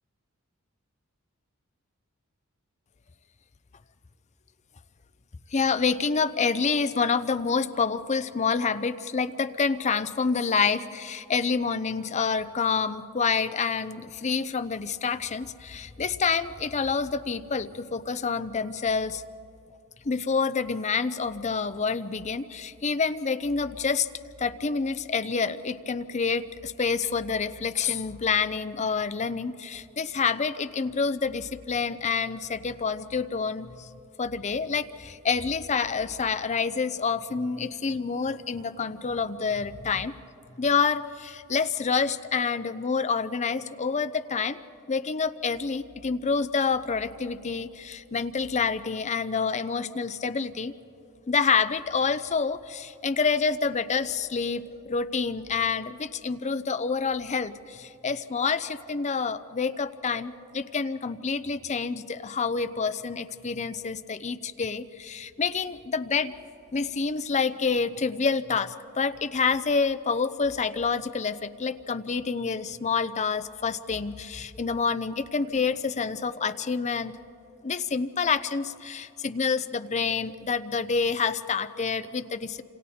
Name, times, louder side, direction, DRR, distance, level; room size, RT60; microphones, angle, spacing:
voice 1, 5.5-19.2 20.0-24.1 24.4-33.9 34.2-40.1 40.6-44.6 44.9-50.7 51.3-66.3 66.7-77.2 77.6-82.6, left 5 dB, 30° left, 12 dB, 0.6 m, -28 dB
28.5 x 27.0 x 4.3 m, 2.9 s
head